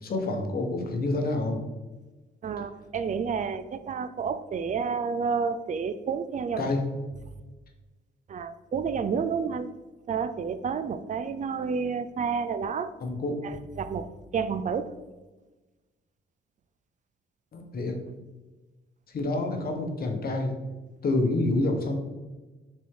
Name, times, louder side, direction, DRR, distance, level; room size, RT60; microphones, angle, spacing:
voice 1, 0.0-1.6 6.6-6.8 13.0-13.4 17.5-18.0 19.1-20.5 21.0-22.0, left 2 dB, 50° left, 3 dB, 1.2 m, -27 dB
voice 2, 2.4-6.7 8.3-9.7 10.1-12.9 13.4-14.9, right 6 dB, 40° right, 13 dB, 0.5 m, -30 dB
6.0 x 4.3 x 3.7 m, 1.2 s
cardioid pair, 90°, 20 cm